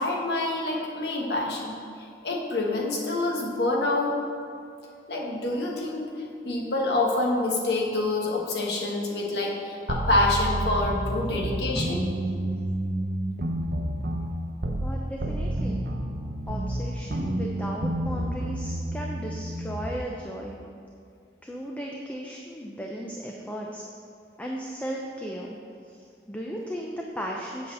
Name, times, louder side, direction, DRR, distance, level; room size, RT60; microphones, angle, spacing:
voice 1, 0.0-4.2 5.1-12.0, left 2 dB, 65° left, -2 dB, 1.3 m, -27 dB
sound 1, 9.9-14.9 15.2-20.0, right 1 dB, 60° right, 0.8 m, -29 dB
voice 2, 14.8-15.9 16.5-20.6 21.4-23.8 24.4-25.6 25.9-26.0 26.3-27.7, equal, 10° left, -1 dB, 0.5 m, -36 dB
7.7 x 4.1 x 6.6 m, 2.4 s
head